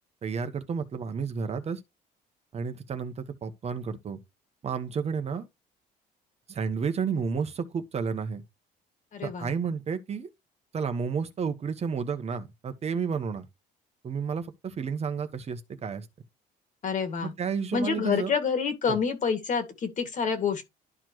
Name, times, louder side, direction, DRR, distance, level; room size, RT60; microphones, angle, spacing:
voice 1, 0.2-1.8 2.5-4.2 4.6-5.5 6.5-8.4 9.2-10.3 10.7-13.5 14.0-16.1 17.2-18.3 18.9-19.0, right 6 dB, 40° right, 1.1 m, -31 dB
voice 2, 9.1-9.5 16.8-17.3 17.7-20.6, left 6 dB, 50° left, 2.2 m, -28 dB
12.0 x 4.4 x 3.1 m
cardioid pair, 110°, 17 cm